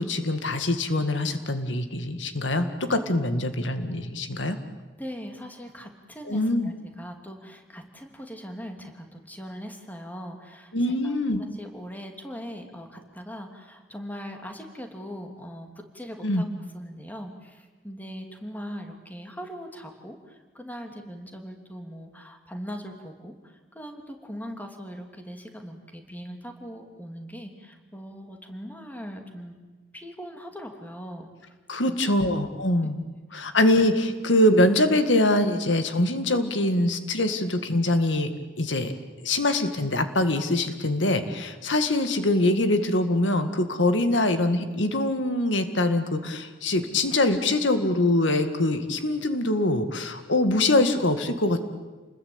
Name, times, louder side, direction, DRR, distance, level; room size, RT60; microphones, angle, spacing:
voice 1, 0.0-4.6 6.3-6.7 10.7-11.4 16.2-16.4 31.7-33.0 33.3-38.3 38.6-38.9 39.2-51.6, left 1 dB, 85° left, 8 dB, 2.0 m, -23 dB
voice 2, 5.0-29.6 29.9-31.5 31.9-32.3 33.1-33.8, equal, 10° left, 4 dB, 2.9 m, -40 dB
29.0 x 20.5 x 8.8 m, 1.3 s
head